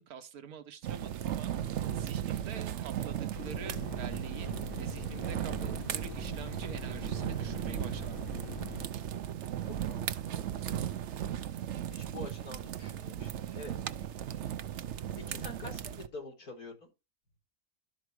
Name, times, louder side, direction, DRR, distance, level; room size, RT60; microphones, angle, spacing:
voice 1, 0.0-1.5 1.9-4.5 4.8-8.2, right 7 dB, 85° right, 1.5 m, -46 dB
sound 1, 0.8-16.1, right 10 dB, 60° right, 0.8 m, -36 dB
sound 2, 3.3-8.9, left 4 dB, 40° left, 1.1 m, -44 dB
voice 2, 9.6-10.4 11.9-13.8 15.3-16.9, left 2 dB, 85° left, 4.4 m, -46 dB
12.5 x 4.7 x 4.7 m
omnidirectional pair, 1.5 m